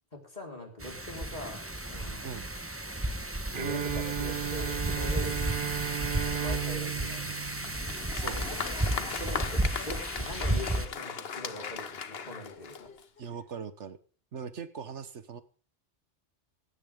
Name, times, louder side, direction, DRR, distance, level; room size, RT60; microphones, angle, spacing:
voice 1, 0.1-2.3 3.5-5.4 6.2-7.5 8.9-12.9, left 1 dB, 40° left, 1 dB, 4.6 m, -42 dB
Wind, 0.8-10.9, right 1 dB, 10° right, 1.2 m, -33 dB
Bowed string instrument, 3.5-8.4, right 10 dB, 50° right, 1.0 m, -35 dB
Applause, 7.6-13.2, left 6 dB, 55° left, 1.2 m, -38 dB
voice 2, 8.1-8.7 13.2-14.0 14.3-15.4, right 6 dB, 75° right, 13 dB, 1.4 m, -40 dB
16.5 x 16.5 x 3.7 m, 0.38 s
omnidirectional pair, 1.2 m